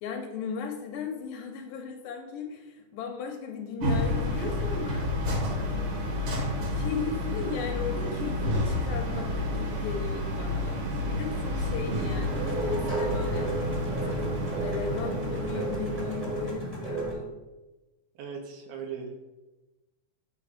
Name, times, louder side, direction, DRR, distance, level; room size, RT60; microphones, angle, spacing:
voice 1, 0.0-5.1 6.7-13.5 14.0-14.3 14.6-17.3, left 5 dB, 75° left, 3 dB, 2.3 m, -36 dB
sound 1, 3.8-16.5, left 1 dB, 55° right, 1.6 m, -30 dB
sound 2, 12.1-17.1, right 2 dB, 25° right, 1.0 m, -33 dB
voice 2, 18.2-19.2, right 6 dB, 80° right, 3 dB, 2.9 m, -38 dB
8.9 x 4.1 x 4.9 m, 1.1 s
omnidirectional pair, 4.2 m